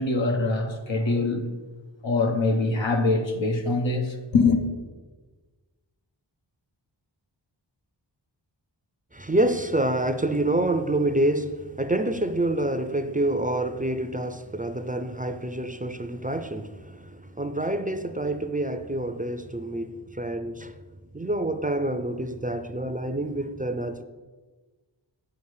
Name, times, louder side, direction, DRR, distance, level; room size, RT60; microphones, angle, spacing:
voice 1, 0.0-1.4 2.0-4.6, left 3 dB, 80° left, 1.1 m, -23 dB
voice 2, 9.1-20.7 21.1-24.0, right 1 dB, 20° right, 0.5 m, -27 dB
8.4 x 7.0 x 4.9 m
wide cardioid pair, 75°, 45 cm